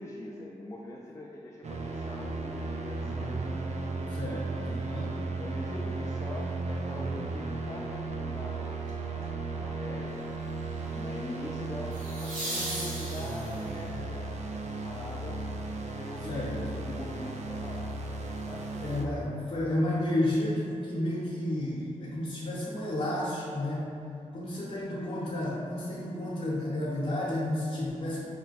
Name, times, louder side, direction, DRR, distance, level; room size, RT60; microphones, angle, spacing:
voice 1, 0.0-3.5 5.4-10.2 10.9-15.4 15.9-17.9 18.5-19.4, left 1 dB, 20° left, -3 dB, 0.4 m, -43 dB
sound 1, 1.6-19.1, right 3 dB, 55° right, 0.5 m, -35 dB
voice 2, 4.1-5.1 16.2-16.6 18.8-23.9 24.3-28.3, left 1 dB, 45° left, -8 dB, 0.8 m, -31 dB
sound 2, 8.9-9.2 11.9-13.8 16.7-16.8, right 1 dB, 75° right, 1.2 m, -37 dB
4.8 x 2.2 x 4.0 m, 2.5 s
cardioid pair, 70°, 14 cm